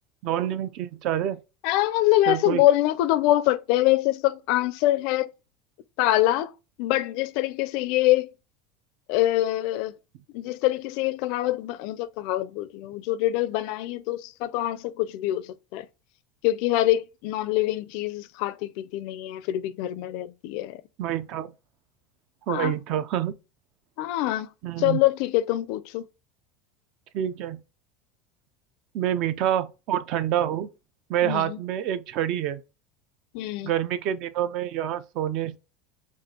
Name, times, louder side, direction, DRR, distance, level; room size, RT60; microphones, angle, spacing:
voice 1, 0.2-1.4 2.3-2.6 21.0-21.5 22.5-23.4 24.6-25.0 27.1-27.6 28.9-30.7 31.1-32.6 33.6-35.6, right 11 dB, 45° right, 0.4 m, -27 dB
voice 2, 1.6-5.3 6.0-6.5 6.8-8.3 9.1-9.9 10.3-15.9 16.4-20.8 22.5-22.7 24.0-24.5 24.8-26.0 31.2-31.6 33.3-33.7, left 15 dB, 55° left, 0.4 m, -24 dB
5.2 x 2.4 x 2.8 m
supercardioid pair, 160°, 0 cm